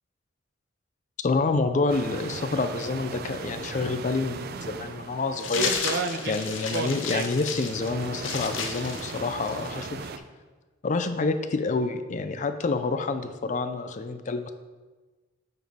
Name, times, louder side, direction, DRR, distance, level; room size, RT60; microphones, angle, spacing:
voice 1, 1.2-5.8 6.3-10.0 10.8-14.5, left 3 dB, 40° left, 9 dB, 0.4 m, -28 dB
sound 1, 1.9-10.2, right 4 dB, 50° right, 0.4 m, -35 dB
sound 2, 5.4-9.8, left 5 dB, 75° left, 0.7 m, -33 dB
9.3 x 3.9 x 3.5 m, 1.3 s
head